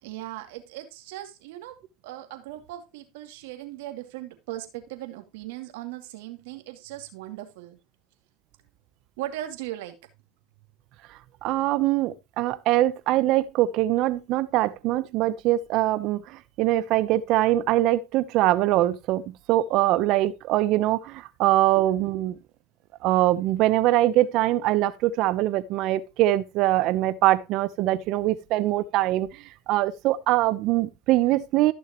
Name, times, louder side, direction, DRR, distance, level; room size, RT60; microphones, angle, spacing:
voice 1, 0.0-7.8 9.2-9.9 22.1-22.2, right 14 dB, 75° right, 2.5 m, -38 dB
voice 2, 11.4-22.3 23.0-31.7, right 15 dB, 60° right, 0.8 m, -23 dB
15.0 x 6.4 x 3.0 m
supercardioid pair, 100°, 0 cm